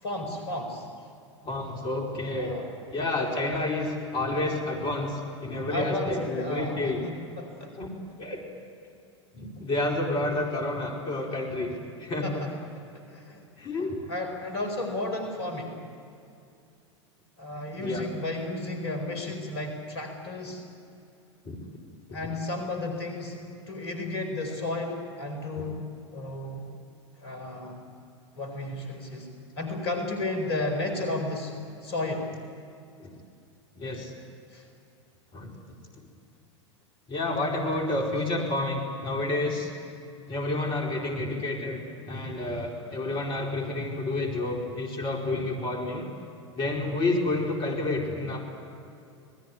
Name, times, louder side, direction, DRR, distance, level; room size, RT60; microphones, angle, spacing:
voice 1, 0.0-0.9 2.4-2.7 4.3-4.4 5.7-7.7 12.2-13.4 13.8-15.8 17.4-20.6 22.1-23.4 23.7-25.9 26.1-26.6 27.2-27.8 28.4-29.3 29.6-32.3 34.5-34.7, left 2 dB, 65° left, 5 dB, 4.5 m, -33 dB
voice 2, 1.4-2.5 2.9-7.0 7.8-7.9 8.2-8.4 9.3-11.7 12.0-12.4 13.6-14.0 17.8-18.0 21.4-21.6 22.1-22.2 25.6-25.7 33.0-33.1 33.8-34.2 35.3-35.8 37.1-39.7 40.3-41.8 42.1-46.1 46.5-48.4, left 2 dB, 35° left, 0 dB, 4.7 m, -29 dB
28.0 x 20.0 x 9.5 m, 2.6 s
figure-of-eight pair, 85°, 15 cm